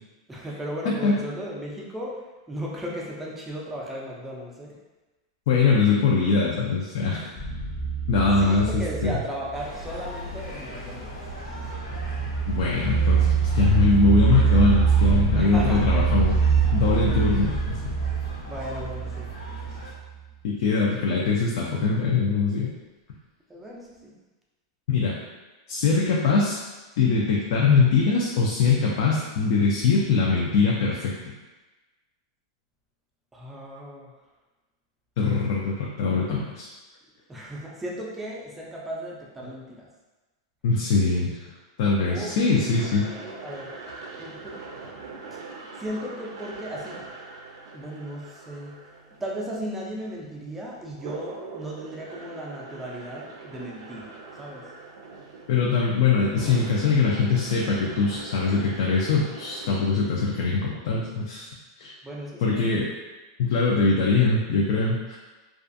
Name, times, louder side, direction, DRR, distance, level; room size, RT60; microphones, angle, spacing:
voice 1, 0.3-2.2 2.5-4.8 8.2-11.1 15.3-16.2 17.1-17.3 18.5-19.3 23.5-24.1 33.3-34.1 36.0-36.4 37.3-39.9 42.0-42.3 42.6-43.7 44.2-44.6 45.3-47.0 47.7-48.7 49.2-54.1 54.4-54.6 62.0-62.8, equal, 5° right, -4 dB, 0.4 m, -36 dB
voice 2, 5.5-7.3 8.1-9.2 12.5-16.4 16.7-17.8 20.4-22.7 24.9-25.1 25.7-26.6 27.0-31.1 35.2-36.7 39.4-39.5 40.6-41.4 41.8-43.1 55.5-61.5 61.8-61.9 62.4-62.9 63.4-65.2, left 4 dB, 60° left, -3 dB, 0.4 m, -22 dB
sound 1, 7.4-9.6 11.0-19.9, right 6 dB, 25° left, 0.7 m, -24 dB
sound 2, 9.5-19.9, left 1 dB, 85° left, 0.9 m, -40 dB
sound 3, 42.3-59.7, right 4 dB, 85° right, 0.4 m, -42 dB
2.4 x 2.3 x 2.5 m, 1.2 s
supercardioid pair, 155°, 2 cm